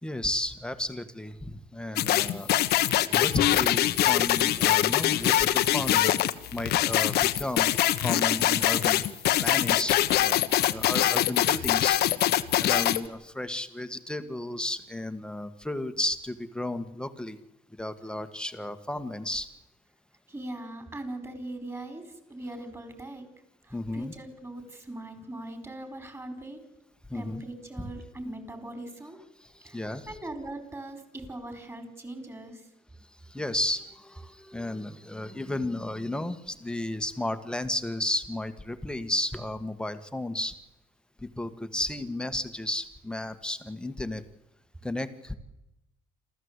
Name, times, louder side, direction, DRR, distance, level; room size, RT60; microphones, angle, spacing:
voice 1, 0.0-6.1 6.5-9.1 9.4-12.0 12.6-17.4 17.8-19.5 23.7-24.1 27.1-27.4 27.8-27.9 29.4-30.2 33.3-40.5 41.2-44.2 44.8-45.3, left 1 dB, 5° left, 10 dB, 1.6 m, -33 dB
sound 1, 2.0-13.0, left 13 dB, 75° left, 1.2 m, -23 dB
voice 2, 20.3-23.3 23.6-26.6 27.1-29.2 29.6-32.6, right 1 dB, 15° right, 7 dB, 4.8 m, -40 dB
27.5 x 14.0 x 8.3 m, 0.91 s
cardioid pair, 110°, 17 cm